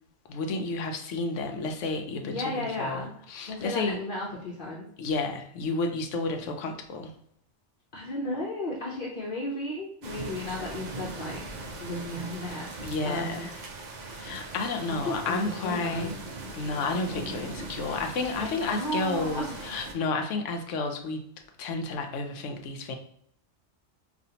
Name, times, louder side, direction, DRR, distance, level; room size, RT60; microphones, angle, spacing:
voice 1, 0.3-4.0 5.0-7.1 12.8-13.5 14.1-16.1 16.5-21.2 21.6-23.0, left 3 dB, 80° left, 5 dB, 0.9 m, -31 dB
voice 2, 2.2-3.1 3.5-4.9 7.9-11.4 11.8-12.7 13.0-13.5 14.9-16.2 18.4-19.6, left 1 dB, 50° left, -3 dB, 0.8 m, -34 dB
sound 1, 10.0-19.9, right 2 dB, 55° right, 0.5 m, -40 dB
5.2 x 2.4 x 2.8 m, 0.72 s
omnidirectional pair, 1.2 m